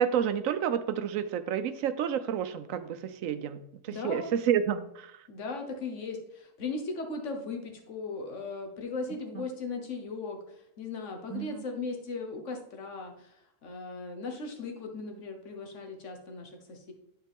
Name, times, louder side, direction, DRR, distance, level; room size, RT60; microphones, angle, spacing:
voice 1, 0.0-3.6 3.8-5.1 11.3-11.6, right 9 dB, 85° right, 11 dB, 1.0 m, -29 dB
voice 2, 3.9-4.3 5.3-16.9, left 3 dB, 70° left, 3 dB, 1.5 m, -38 dB
9.7 x 4.5 x 3.6 m, 0.78 s
omnidirectional pair, 1.3 m